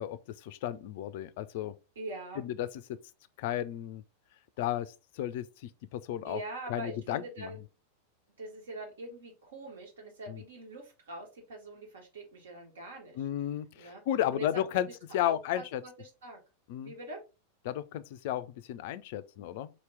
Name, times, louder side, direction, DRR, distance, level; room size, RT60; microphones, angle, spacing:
voice 1, 0.0-1.7 2.4-3.0 3.4-4.0 4.6-6.4 6.7-7.5 10.3-10.4 13.1-15.8 16.7-16.9 17.6-19.7, left 12 dB, 50° left, 0.3 m, -34 dB
voice 2, 1.9-2.5 6.2-7.6 8.4-13.2 13.7-14.0 14.3-14.6 14.9-15.0 15.2-16.4 16.8-17.2, right 2 dB, 65° right, 1.7 m, -43 dB
4.2 x 2.9 x 3.2 m
figure-of-eight pair, 90°, 0 cm